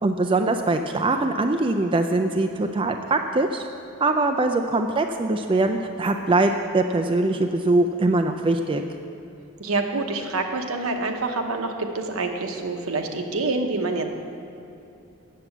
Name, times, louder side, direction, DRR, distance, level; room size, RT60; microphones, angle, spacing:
voice 1, 0.0-3.7 4.0-8.8, right 2 dB, 25° right, 5 dB, 0.3 m, -22 dB
voice 2, 9.6-14.1, right 3 dB, 75° right, 4 dB, 0.9 m, -26 dB
7.6 x 7.1 x 7.9 m, 2.8 s
head